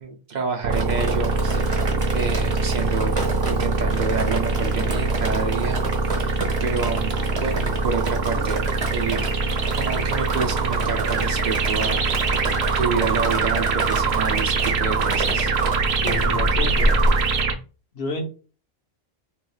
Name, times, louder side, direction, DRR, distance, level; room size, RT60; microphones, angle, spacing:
voice 1, 0.0-5.8 6.1-8.6 8.9-9.2 9.7-12.1 12.8-15.5, right 5 dB, 50° right, 2 dB, 0.7 m, -29 dB
sound 1, 0.6-17.5, right 4 dB, 80° right, 0.9 m, -23 dB
Drip, 0.7-17.4, right 1 dB, 35° right, 1.0 m, -29 dB
voice 2, 16.0-17.0 17.9-18.2, left 3 dB, 75° left, 3 dB, 1.2 m, -29 dB
3.4 x 3.2 x 2.3 m, 0.36 s
omnidirectional pair, 1.1 m